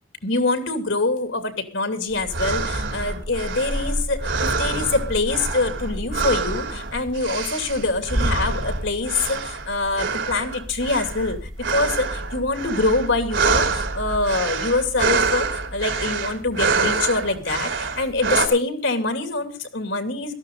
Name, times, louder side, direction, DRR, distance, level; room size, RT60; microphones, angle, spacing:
voice 1, 0.2-11.4 11.7-20.3, left 3 dB, 75° left, 7 dB, 2.7 m, -24 dB
sound 1, 2.1-18.5, right 4 dB, 70° right, 3.2 m, -26 dB
18.0 x 13.5 x 3.9 m, 0.35 s
head